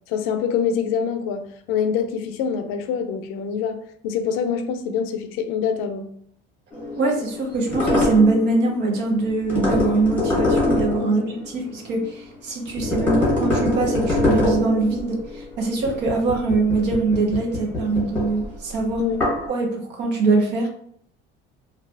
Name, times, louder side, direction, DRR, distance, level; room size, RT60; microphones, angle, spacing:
voice 1, 0.1-6.1 11.0-11.1 19.0-19.2, left 7 dB, 90° left, 0.5 m, -25 dB
sound 1, 6.7-12.3 12.7-19.5, left 2 dB, 5° left, 1.0 m, -25 dB
voice 2, 7.0-19.0 19.5-20.7, right 3 dB, 55° right, 0.8 m, -22 dB
2.7 x 2.4 x 3.3 m
cardioid pair, 180°, 21 cm